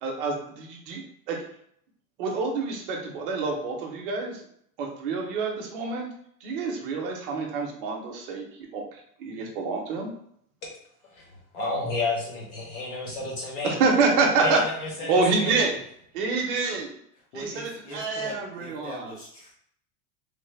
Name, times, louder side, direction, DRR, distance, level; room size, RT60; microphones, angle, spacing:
voice 1, 0.0-1.4 2.2-4.4 4.8-6.1 6.4-10.1 13.6-14.6 15.1-15.8 16.1-16.9 17.3-19.1, right 4 dB, 40° right, 1 dB, 0.6 m, -27 dB
voice 2, 11.1-13.8 14.4-15.7, left 3 dB, 25° left, -2 dB, 0.6 m, -31 dB
voice 3, 15.0-15.3 17.1-19.5, left 1 dB, 85° left, -9 dB, 1.2 m, -42 dB
3.2 x 2.0 x 3.1 m, 0.67 s
supercardioid pair, 170°, 45 cm